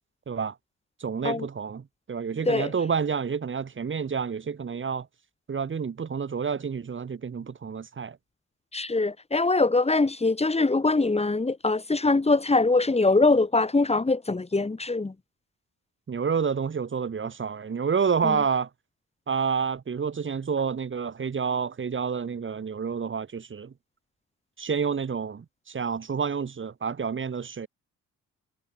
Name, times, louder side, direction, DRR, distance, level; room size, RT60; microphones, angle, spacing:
voice 1, 1.0-5.1 5.5-8.2 16.1-18.7 19.3-23.7 24.6-27.7, right 6 dB, 40° right, 4.5 m, -29 dB
voice 2, 8.7-15.1 18.2-18.4, left 3 dB, 20° left, 5.1 m, -23 dB
cardioid pair, 90°, 30 cm